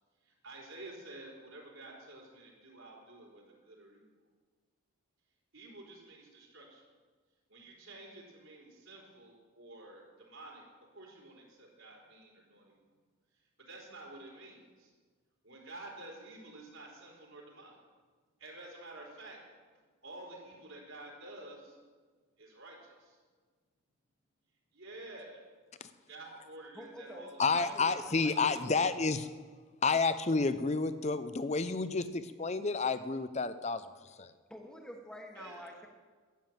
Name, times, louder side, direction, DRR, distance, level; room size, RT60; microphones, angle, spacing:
voice 1, 0.2-4.1 5.5-6.8 7.5-12.8 13.6-14.9 15.4-17.8 18.4-19.4 20.0-21.8 22.4-23.2 24.7-25.4 26.1-28.4 35.3-35.8, right 2 dB, 70° right, -1 dB, 4.0 m, -50 dB
voice 2, 26.7-27.3 27.5-28.5 34.5-35.9, equal, 5° left, 1 dB, 1.3 m, -48 dB
voice 3, 27.4-29.3 29.8-33.8 34.2-34.3, left 4 dB, 30° left, 13 dB, 0.6 m, -30 dB
13.0 x 9.4 x 7.3 m, 1.5 s
head